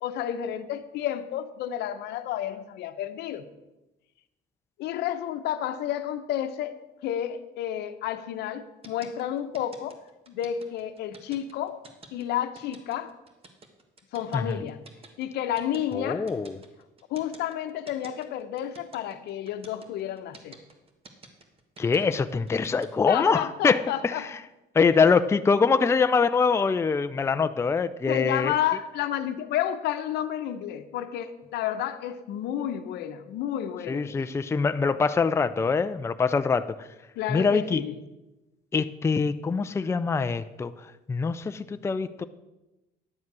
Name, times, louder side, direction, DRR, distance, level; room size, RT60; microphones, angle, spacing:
voice 1, 0.0-3.4 4.8-10.0 10.3-11.8 12.1-13.1 14.1-14.8 15.2-16.3 17.1-20.6 23.1-24.3 28.1-34.1 37.2-37.9, left 11 dB, 80° left, 10 dB, 0.8 m, -31 dB
sound 1, 8.8-22.9, right 3 dB, 35° right, 1.6 m, -49 dB
voice 2, 15.9-16.6 21.8-24.3 24.7-28.5 33.9-36.9 37.3-37.8 38.7-42.2, left 5 dB, 15° left, 10 dB, 0.4 m, -24 dB
11.0 x 7.2 x 6.1 m, 1.0 s
cardioid pair, 110°, 17 cm